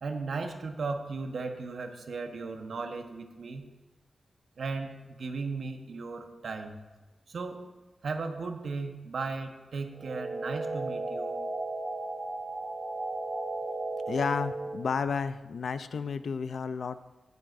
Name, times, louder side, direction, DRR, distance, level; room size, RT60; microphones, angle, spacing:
voice 1, 0.0-3.7 4.6-6.8 7.3-7.7 8.0-11.4, right 4 dB, 80° right, 5 dB, 1.0 m, -36 dB
sound 1, 9.9-14.9, right 2 dB, 35° right, 1.4 m, -35 dB
voice 2, 14.1-17.0, left 5 dB, 85° left, 13 dB, 0.4 m, -32 dB
18.5 x 7.9 x 2.6 m, 1.1 s
wide cardioid pair, 100°, 0 cm